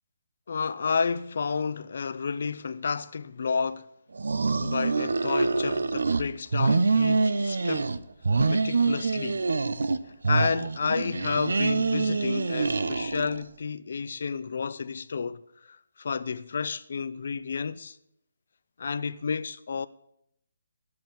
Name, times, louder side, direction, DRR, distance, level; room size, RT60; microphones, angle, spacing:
voice 1, 0.5-3.9 4.6-8.0 8.5-9.5 10.3-18.0 18.8-19.9, left 5 dB, 55° left, 0.6 m, -31 dB
sound 1, 4.2-6.2 6.5-8.0 8.2-10.0 10.2-13.4, right 3 dB, 80° right, 0.8 m, -25 dB
11.0 x 7.8 x 7.2 m
hypercardioid pair, 165°, 0 cm